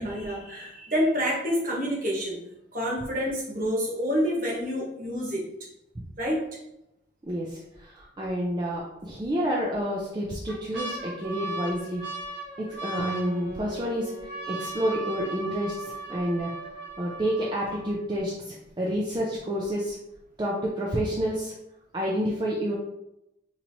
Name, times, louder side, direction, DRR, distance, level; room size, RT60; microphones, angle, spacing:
voice 1, 0.0-2.4 2.7-5.5 6.2-6.5, equal, 45° right, -4 dB, 1.2 m, -28 dB
voice 2, 7.2-12.0 12.6-16.5 17.0-20.0 20.4-21.5 21.9-22.7, equal, 25° right, -4 dB, 0.4 m, -29 dB
sound 1, 7.3-7.8 8.2-8.3 9.2-9.8 10.2-18.2 18.9-19.0 19.2-19.6 20.1-20.2, right 3 dB, 80° right, 1.5 m, -38 dB
Acoustic guitar, 13.0-16.7, right 2 dB, 30° left, 0.5 m, -39 dB
4.3 x 2.8 x 2.7 m, 0.88 s
head